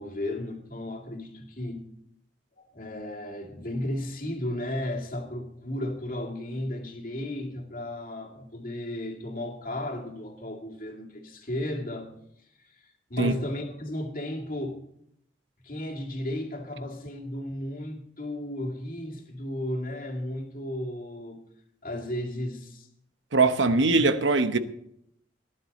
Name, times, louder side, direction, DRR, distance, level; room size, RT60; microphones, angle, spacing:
voice 1, 0.0-1.9 2.6-12.2 12.6-14.8 15.6-21.4 21.8-22.9 23.6-24.1, left 1 dB, 45° left, 2.2 m, -34 dB
voice 2, 23.3-24.6, right 3 dB, 85° right, 1.0 m, -21 dB
18.0 x 11.0 x 4.1 m
head